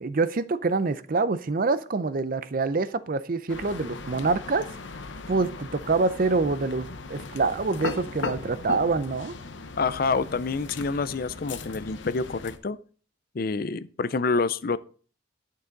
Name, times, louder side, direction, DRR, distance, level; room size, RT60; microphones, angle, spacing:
voice 1, 0.0-4.7 5.3-9.3, right 3 dB, 45° right, 0.5 m, -26 dB
sound 1, 3.5-12.6, left 3 dB, 70° left, 0.9 m, -38 dB
voice 2, 9.8-12.8 13.3-14.8, left 4 dB, 50° left, 0.5 m, -27 dB
11.0 x 6.7 x 3.9 m
head